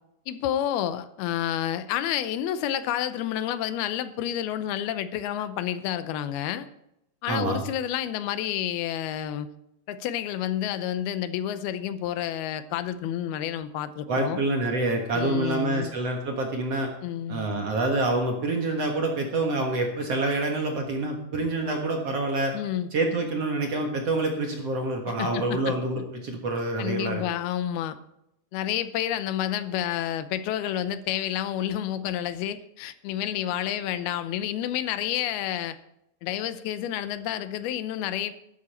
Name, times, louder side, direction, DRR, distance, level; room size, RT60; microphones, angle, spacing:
voice 1, 0.3-6.7 7.2-9.5 9.9-14.4 15.1-15.9 17.0-17.5 22.5-22.9 25.1-25.7 26.8-28.0 28.5-35.8 36.2-38.3, left 11 dB, 85° left, 12 dB, 2.7 m, -29 dB
voice 2, 7.3-7.6 14.1-16.9 17.3-22.5 22.9-27.2, right 2 dB, 55° right, 2 dB, 2.0 m, -27 dB
12.5 x 12.5 x 4.3 m, 0.80 s
omnidirectional pair, 4.4 m